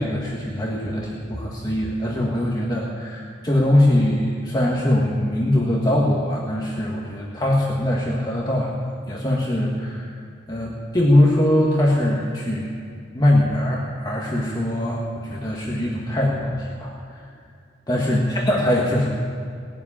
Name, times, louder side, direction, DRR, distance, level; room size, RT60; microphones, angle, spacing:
voice 1, 0.0-8.7 9.1-10.1 10.5-12.7 13.1-17.3 17.9-19.2, left 1 dB, 20° left, -3 dB, 1.4 m, -22 dB
18.5 x 7.3 x 9.9 m, 2.3 s
head